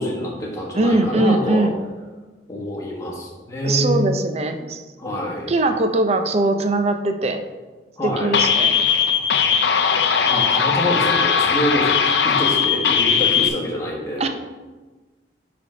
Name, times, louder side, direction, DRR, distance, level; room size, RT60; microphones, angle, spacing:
voice 1, 0.0-1.7 2.5-4.1 5.0-5.5 8.0-8.3 10.2-14.3, equal, 20° left, -4 dB, 1.4 m, -26 dB
voice 2, 0.7-1.8 3.6-4.8 5.5-7.4 8.0-8.8 14.2-14.3, right 2 dB, 35° right, 7 dB, 0.5 m, -21 dB
sound 1, 8.3-13.5, left 6 dB, 75° left, 0.5 m, -18 dB
10.0 x 3.4 x 3.8 m, 1.3 s
head